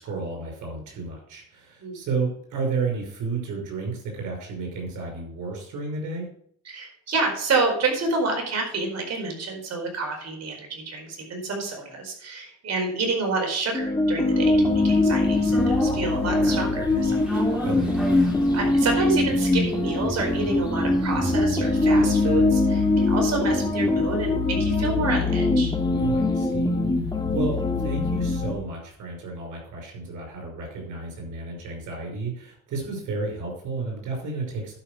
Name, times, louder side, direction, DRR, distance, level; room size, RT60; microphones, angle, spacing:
voice 1, 0.0-6.3 17.6-18.0 26.0-34.8, right 4 dB, 85° right, 1 dB, 5.5 m, -32 dB
voice 2, 6.7-17.2 17.5-17.6 18.5-25.7, right 3 dB, 60° right, 1 dB, 4.7 m, -28 dB
sound 1, 13.7-28.5, left 2 dB, 15° left, 2.7 m, -22 dB
sound 2, 15.5-23.8 24.1-24.2, equal, 5° right, 3.5 m, -37 dB
11.5 x 5.7 x 6.3 m, 0.63 s
cardioid pair, 90°, 30 cm